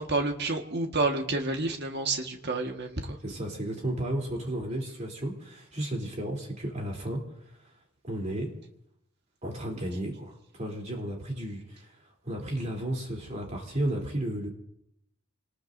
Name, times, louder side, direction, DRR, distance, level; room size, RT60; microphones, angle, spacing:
voice 1, 0.0-3.2, right 2 dB, 50° right, 4 dB, 1.6 m, -29 dB
voice 2, 3.2-7.2 8.0-8.5 9.4-12.0 12.2-14.5, right 1 dB, 35° right, 0 dB, 3.3 m, -33 dB
28.0 x 19.5 x 2.7 m, 0.81 s
head